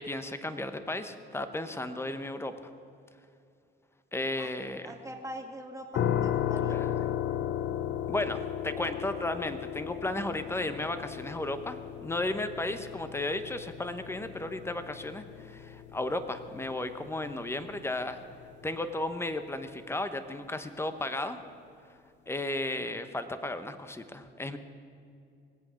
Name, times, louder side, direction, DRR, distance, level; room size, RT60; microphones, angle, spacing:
voice 1, 0.0-2.5 4.1-4.9 6.7-6.9 8.1-18.2 18.6-21.4 22.3-24.6, left 2 dB, 10° left, 10 dB, 1.0 m, -34 dB
voice 2, 4.8-6.8, right 1 dB, 15° right, 3 dB, 2.0 m, -42 dB
sound 1, 5.9-18.8, left 10 dB, 65° left, 0.6 m, -35 dB
20.0 x 8.5 x 6.4 m, 2.5 s
cardioid pair, 90°, 20 cm